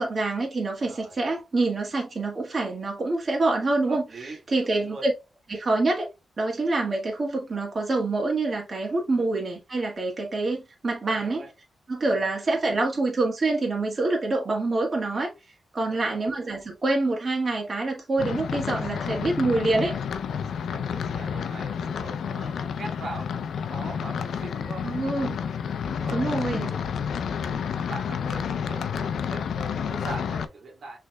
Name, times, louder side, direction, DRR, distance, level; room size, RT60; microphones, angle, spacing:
voice 1, 0.0-5.1 5.5-6.1 6.4-11.4 11.9-15.3 15.7-20.0 24.8-25.4 26.1-26.7, right 2 dB, 45° right, 1.5 m, -26 dB
voice 2, 0.8-1.2 3.9-5.1 9.1-9.3 11.0-11.5 12.1-12.3 15.8-16.2 20.6-24.9 25.8-26.8 27.2-31.0, right 2 dB, 65° right, 1.7 m, -42 dB
sound 1, 18.2-30.5, left 7 dB, 85° left, 0.4 m, -30 dB
6.2 x 3.3 x 2.2 m
cardioid pair, 85°, 0 cm